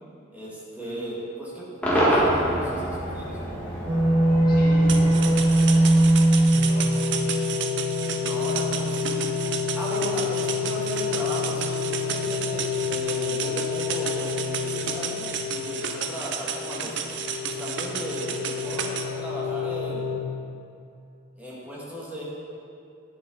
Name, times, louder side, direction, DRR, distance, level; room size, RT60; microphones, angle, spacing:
voice 1, 0.3-3.6 8.2-9.3 9.8-17.0 17.4-20.2 21.3-22.2, equal, 10° right, -7 dB, 1.8 m, -36 dB
Cheering / Crowd / Fireworks, 1.8-7.1, equal, 10° left, 1.5 m, -27 dB
sound 1, 3.9-20.2, equal, 25° right, 0.8 m, -24 dB
voice 2, 4.5-7.0, equal, 50° left, -4 dB, 1.7 m, -41 dB
sound 2, 4.9-19.0, right 7 dB, 65° right, 0.6 m, -32 dB
9.3 x 7.0 x 3.9 m, 2.5 s
head